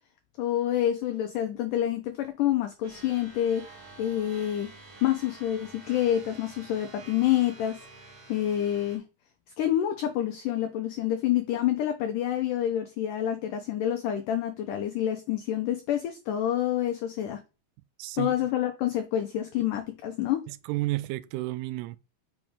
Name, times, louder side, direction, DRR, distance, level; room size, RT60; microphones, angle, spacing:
voice 1, 0.4-4.7 5.0-7.9 8.3-9.0 9.6-17.4 18.2-20.5, left 11 dB, 85° left, 1.8 m, -28 dB
sound 1, 2.8-9.0, right 3 dB, 45° right, 2.0 m, -49 dB
voice 2, 18.0-18.3 20.5-22.0, right 19 dB, 85° right, 2.6 m, -31 dB
6.8 x 5.1 x 3.5 m
omnidirectional pair, 4.7 m